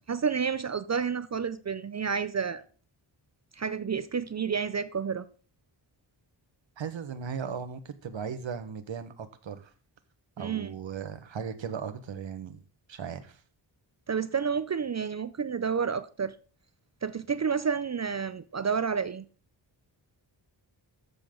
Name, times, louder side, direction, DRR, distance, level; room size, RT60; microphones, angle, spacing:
voice 1, 0.1-2.6 3.6-5.3 10.4-10.8 14.1-16.3 17.0-19.2, right 6 dB, 35° right, 0.5 m, -30 dB
voice 2, 6.8-9.7 10.4-12.6 12.9-13.4, right 7 dB, 70° right, 1.4 m, -37 dB
13.5 x 6.9 x 3.8 m
wide cardioid pair, 135°, 46 cm